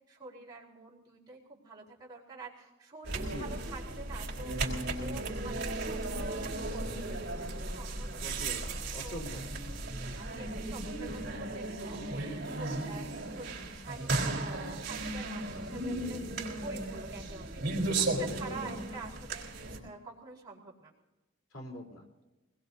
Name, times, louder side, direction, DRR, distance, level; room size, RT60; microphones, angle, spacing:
voice 1, 0.1-8.3 9.0-9.2 9.8-20.9, right 3 dB, 20° right, -6 dB, 4.2 m, -48 dB
sound 1, 3.0-19.8, right 2 dB, 55° right, 4.2 m, -35 dB
voice 2, 3.2-3.5 8.2-9.4 17.9-18.6 21.5-22.0, left 1 dB, 80° left, 0 dB, 3.9 m, -43 dB
24.5 x 21.0 x 2.8 m, 1.1 s
head